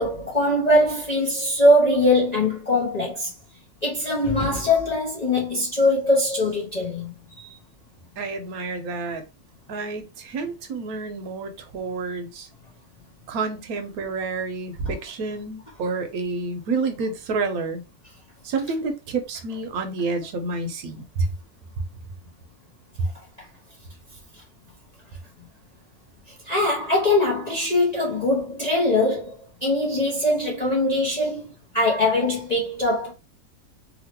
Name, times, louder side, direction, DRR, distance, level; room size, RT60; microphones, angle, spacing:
voice 1, 0.0-3.3 3.8-7.5 26.4-33.1, left 1 dB, 45° left, 0.5 m, -22 dB
voice 2, 8.2-9.2 9.7-12.5 13.3-17.8 18.4-21.3 23.0-23.1, right 3 dB, 70° right, 1.1 m, -29 dB
2.9 x 2.8 x 2.9 m
omnidirectional pair, 1.8 m